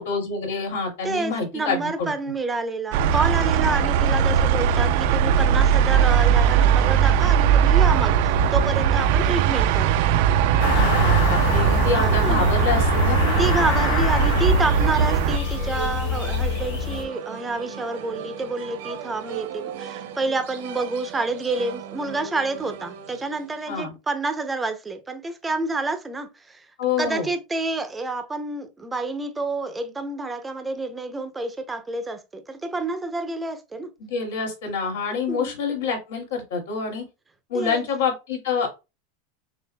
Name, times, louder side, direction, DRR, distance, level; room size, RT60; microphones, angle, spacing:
voice 1, 0.0-2.1 3.7-3.8 10.7-13.4 23.7-23.9 26.8-27.3 34.0-37.0 37.5-38.7, left 5 dB, 80° left, 2.5 m, -27 dB
voice 2, 1.0-10.0 11.9-12.5 13.4-26.6 27.0-33.9 35.3-35.6 37.5-37.8, right 3 dB, 10° right, 0.6 m, -28 dB
sound 1, 2.9-15.4, right 8 dB, 60° right, 0.4 m, -19 dB
sound 2, 10.6-17.0, left 6 dB, 65° left, 1.9 m, -25 dB
sound 3, 14.6-23.8, right 8 dB, 75° right, 0.9 m, -37 dB
6.6 x 2.5 x 2.2 m
supercardioid pair, 150°, 0 cm